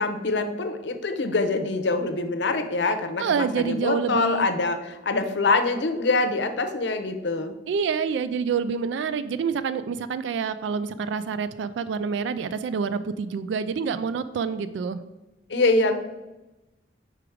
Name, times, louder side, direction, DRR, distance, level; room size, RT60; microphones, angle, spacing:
voice 1, 0.0-7.5 15.5-15.9, left 3 dB, 75° left, 8 dB, 0.7 m, -24 dB
voice 2, 3.2-4.5 7.7-15.0, right 6 dB, 80° right, 14 dB, 0.3 m, -27 dB
4.9 x 4.6 x 4.9 m, 1.0 s
head